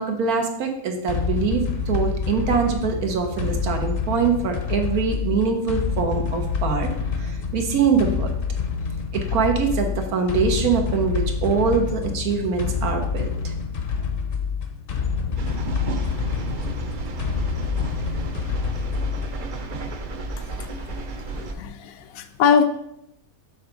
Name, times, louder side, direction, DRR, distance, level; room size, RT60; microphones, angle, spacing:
voice 1, 0.0-6.9 7.2-8.3 9.1-13.5, right 5 dB, 90° right, 4 dB, 1.4 m, -23 dB
sound 1, 1.1-19.5, left 6 dB, 50° left, 0.8 m, -27 dB
sound 2, 15.4-21.5, right 2 dB, 60° right, 0.5 m, -32 dB
voice 2, 20.4-21.0 21.3-22.7, left 6 dB, 75° left, 9 dB, 1.0 m, -23 dB
7.0 x 3.5 x 5.0 m, 0.80 s
omnidirectional pair, 1.5 m